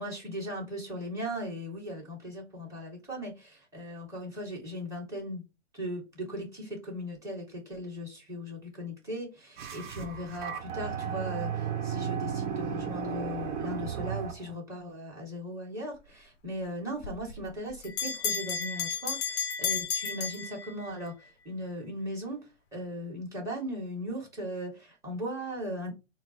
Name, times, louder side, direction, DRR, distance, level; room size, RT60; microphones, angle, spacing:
voice 1, 0.0-5.4 5.7-25.9, equal, 10° right, 1.9 m, -38 dB
sound 1, 9.6-14.5, right 7 dB, 40° right, 1.0 m, -34 dB
Bell, 17.0-21.1, left 6 dB, 20° left, 0.6 m, -33 dB
4.3 x 2.0 x 4.1 m
hypercardioid pair, 130°, 37 cm